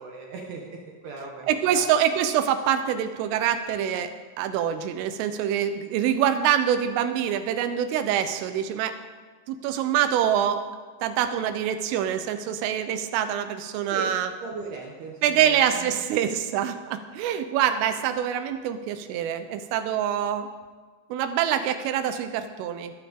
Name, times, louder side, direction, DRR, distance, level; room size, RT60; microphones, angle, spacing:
voice 1, 0.0-1.9 13.9-14.1 14.4-15.9 16.3-16.4 19.6-19.7, right 3 dB, 65° right, -1 dB, 2.9 m, -38 dB
voice 2, 1.5-9.0 9.5-10.6 11.0-14.3 15.2-20.5 21.1-22.9, right 9 dB, 85° right, 9 dB, 3.5 m, -25 dB
21.5 x 13.0 x 3.7 m, 1.5 s
omnidirectional pair, 5.7 m